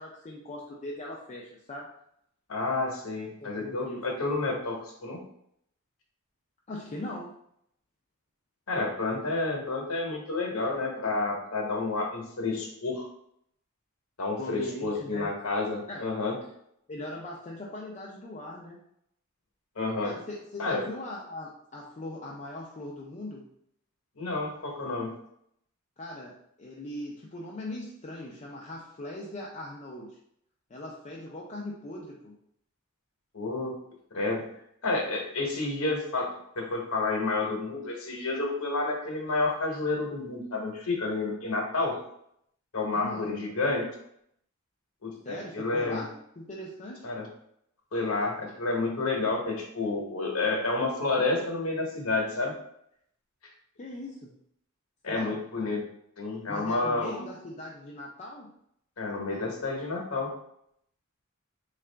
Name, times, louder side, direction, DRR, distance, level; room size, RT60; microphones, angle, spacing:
voice 1, 0.0-1.9 3.4-4.0 6.7-7.4 14.4-15.3 15.9-16.0 16.9-18.8 20.0-23.5 26.0-30.2 30.7-32.4 43.0-43.4 45.2-47.1 53.8-54.3 55.1-55.4 56.5-58.5, left 1 dB, 35° left, -3 dB, 0.4 m, -40 dB
voice 2, 2.5-5.2 8.7-13.1 14.2-16.4 19.8-20.1 20.6-20.8 24.2-25.1 33.3-33.7 34.1-34.4 34.8-42.0 42.7-43.9 45.0-46.0 47.0-47.3 47.9-52.5 55.0-55.8 56.2-57.2 59.0-60.3, left 3 dB, 70° left, 1 dB, 0.9 m, -30 dB
3.8 x 2.4 x 3.3 m, 0.72 s
head